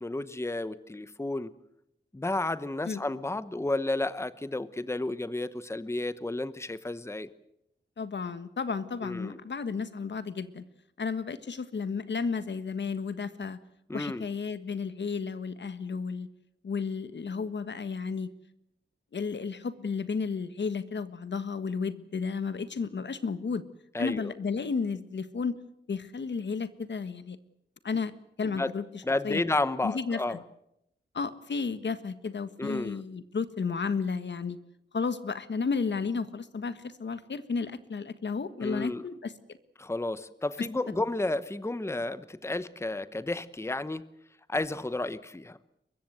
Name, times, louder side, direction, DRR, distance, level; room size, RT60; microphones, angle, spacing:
voice 1, 0.0-1.5 2.1-7.3 9.0-9.4 13.9-14.3 23.9-24.3 28.4-28.7 29.0-30.4 32.6-33.0 38.6-39.0 39.8-44.0 44.5-45.6, left 2 dB, 15° left, 14 dB, 1.0 m, -32 dB
voice 2, 8.0-10.6 11.0-13.6 13.9-16.3 16.6-18.3 19.1-23.6 24.0-25.6 25.9-27.4 27.8-28.1 28.4-29.4 29.8-30.4 31.1-34.6 34.9-39.3 40.6-40.7, left 5 dB, 65° left, 12 dB, 1.5 m, -33 dB
23.5 x 22.0 x 7.9 m, 0.79 s
wide cardioid pair, 105°, 20 cm